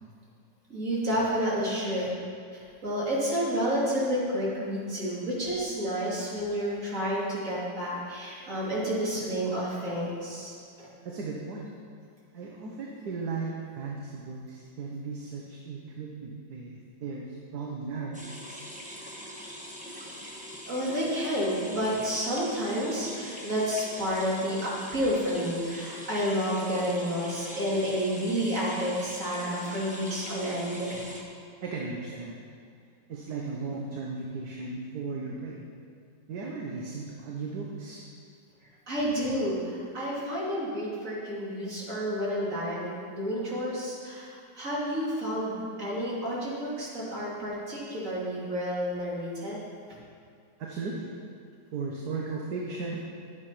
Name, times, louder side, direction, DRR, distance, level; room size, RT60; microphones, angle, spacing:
voice 1, 0.7-2.1 2.5-10.9 20.7-31.0 38.9-49.6, equal, 45° right, -7 dB, 3.3 m, -30 dB
voice 2, 11.0-11.7 12.3-18.6 31.6-32.5 33.1-35.6 36.3-38.0 50.6-51.1 51.7-53.0, right 4 dB, 65° right, -2 dB, 1.6 m, -36 dB
sound 1, 18.1-31.2, equal, 5° right, 1.2 m, -42 dB
12.0 x 8.2 x 5.7 m, 2.3 s
omnidirectional pair, 1.9 m